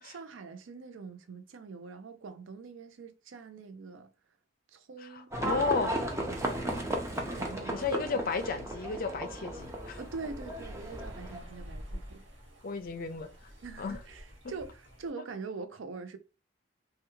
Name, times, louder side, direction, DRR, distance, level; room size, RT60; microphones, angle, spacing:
voice 1, 0.0-4.1 4.7-6.7 7.2-7.8 8.1-8.4 10.0-12.2 13.6-16.2, right 4 dB, 85° right, 0.5 m, -44 dB
voice 2, 5.0-5.9 7.7-10.0 12.6-13.5 13.8-14.0, left 4 dB, 50° left, 0.5 m, -33 dB
Livestock farm animals working animals, 5.3-11.4, right 1 dB, 15° right, 0.5 m, -35 dB
sound 1, 9.6-15.1, equal, 65° right, 1.3 m, -48 dB
3.3 x 2.3 x 3.0 m
head